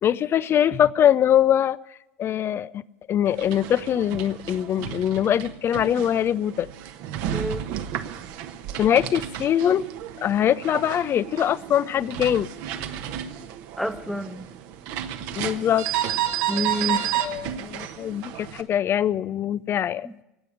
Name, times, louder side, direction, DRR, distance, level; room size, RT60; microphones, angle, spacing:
voice 1, 0.0-1.8 2.2-6.7 8.8-9.9 10.2-12.5 15.4-15.9 17.2-20.1, left 10 dB, 35° left, 20 dB, 0.5 m, -22 dB
sound 1, 3.3-18.6, right 11 dB, 55° right, 1.2 m, -32 dB
voice 2, 7.3-7.7 13.8-14.5 16.5-17.1 20.0-20.2, left 1 dB, ahead, 9 dB, 1.1 m, -29 dB
17.5 x 8.3 x 9.9 m, 0.93 s
hypercardioid pair, 85°, 7 cm